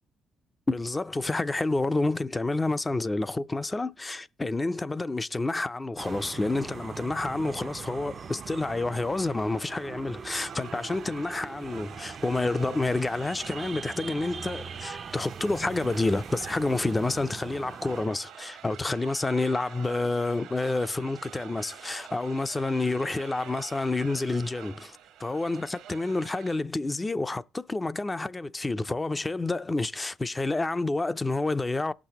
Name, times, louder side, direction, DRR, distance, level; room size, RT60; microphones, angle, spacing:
voice 1, 0.7-31.9, left 2 dB, 20° left, 0.5 m, -29 dB
sound 1, 6.0-18.1, right 6 dB, 45° right, 0.4 m, -41 dB
sound 2, 10.3-26.6, right 10 dB, 85° right, 1.2 m, -47 dB
18.0 x 6.1 x 2.9 m
cardioid pair, 90°, 0 cm